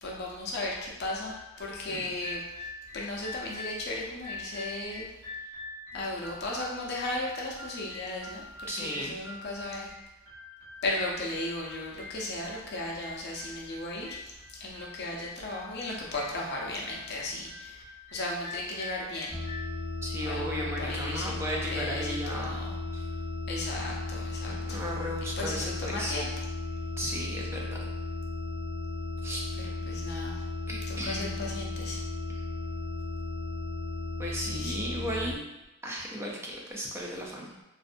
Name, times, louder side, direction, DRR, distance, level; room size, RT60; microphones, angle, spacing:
voice 1, 0.0-5.1 5.9-9.9 10.8-17.8 18.1-19.4 20.2-21.4 21.7-22.8 23.5-24.8 25.2-26.3 29.6-30.4 30.9-32.0 34.5-35.0, left 2 dB, 50° left, -2 dB, 0.5 m, -36 dB
sound 1, 1.0-19.7, left 3 dB, 55° right, 0.7 m, -45 dB
voice 2, 8.7-9.3 20.0-22.6 22.9-23.0 24.7-26.2 27.0-27.7 29.2-29.4 30.7-31.4 34.2-35.5 35.8-37.5, equal, 10° right, -2 dB, 0.3 m, -35 dB
sound 2, 19.3-35.4, left 2 dB, 20° left, 0.9 m, -35 dB
2.5 x 2.1 x 2.5 m, 0.97 s
head